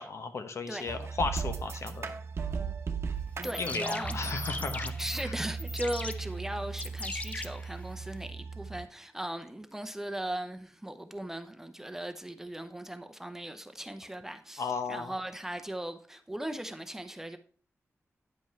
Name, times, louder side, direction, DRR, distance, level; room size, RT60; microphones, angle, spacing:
voice 1, 0.0-2.1 3.6-5.3 14.6-15.1, left 4 dB, 65° left, 0.9 m, -35 dB
sound 1, 0.9-8.8, right 5 dB, 60° right, 0.9 m, -37 dB
sound 2, 3.3-8.3, left 2 dB, 30° left, 0.5 m, -40 dB
voice 2, 3.4-4.3 5.0-17.4, right 1 dB, 10° right, 0.7 m, -38 dB
9.5 x 5.3 x 4.5 m
wide cardioid pair, 140°, 5 cm